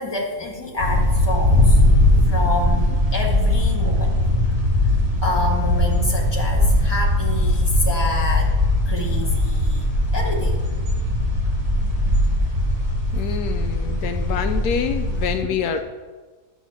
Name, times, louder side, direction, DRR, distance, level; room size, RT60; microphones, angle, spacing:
voice 1, 0.0-1.8 2.3-4.2 5.2-8.5 8.8-10.6 13.3-13.4 13.8-14.4, left 2 dB, 15° left, -1 dB, 1.7 m, -28 dB
sound 1, 0.8-15.4, left 1 dB, 25° right, 2.7 m, -20 dB
voice 2, 13.1-15.9, left 7 dB, 80° left, 7 dB, 1.1 m, -26 dB
11.5 x 4.2 x 7.3 m, 1.4 s
omnidirectional pair, 1.7 m